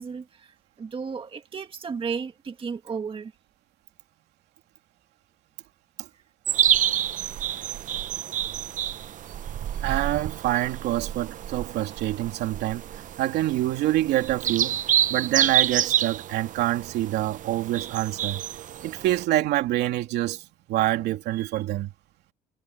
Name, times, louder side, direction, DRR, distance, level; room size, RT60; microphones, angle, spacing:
voice 1, 0.0-3.3 9.1-9.2, right 5 dB, 30° right, 1.9 m, -34 dB
sound 1, 6.5-19.2, right 10 dB, 50° right, 0.7 m, -28 dB
voice 2, 9.8-14.8 15.1-18.4 18.8-21.9, right 15 dB, 80° right, 3.0 m, -26 dB
cardioid pair, 110°, 17 cm